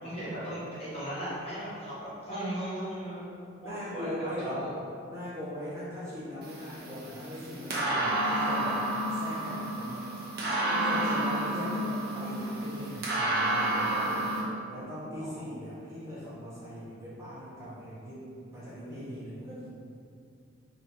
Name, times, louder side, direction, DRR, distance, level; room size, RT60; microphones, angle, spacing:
voice 1, 0.0-3.2 3.6-4.7 15.3-15.4, right 1 dB, 30° left, -10 dB, 1.1 m, -37 dB
voice 2, 3.6-4.7 5.1-8.8 9.1-9.9 10.7-14.2 14.7-18.3 18.5-19.7, equal, 15° right, -12 dB, 1.2 m, -40 dB
sound 1, 6.4-14.4, right 1 dB, 50° right, 0.8 m, -30 dB
4.3 x 3.9 x 2.8 m, 2.5 s
head